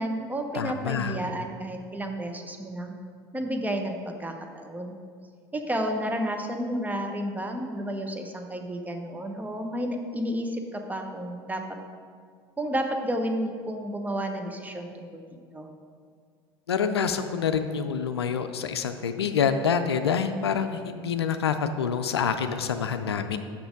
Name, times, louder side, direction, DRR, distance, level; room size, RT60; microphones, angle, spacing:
voice 1, 0.0-2.9 3.3-5.0 5.5-11.8 12.6-15.7, equal, 10° right, 4 dB, 0.9 m, -31 dB
voice 2, 0.5-1.2 16.7-23.4, left 7 dB, 85° left, 9 dB, 0.4 m, -27 dB
6.1 x 6.1 x 5.1 m, 2.1 s
hypercardioid pair, 70°, 13 cm